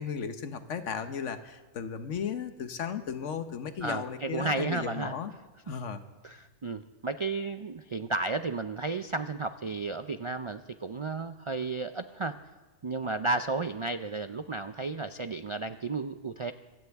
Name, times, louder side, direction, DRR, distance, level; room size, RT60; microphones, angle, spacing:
voice 1, 0.0-5.3 5.7-6.0, left 7 dB, 80° left, 9 dB, 1.3 m, -35 dB
voice 2, 3.8-5.1 5.7-5.8 6.2-12.4 12.8-16.5, right 3 dB, 55° right, 9 dB, 0.3 m, -33 dB
25.5 x 16.0 x 3.5 m, 1.3 s
omnidirectional pair, 1.2 m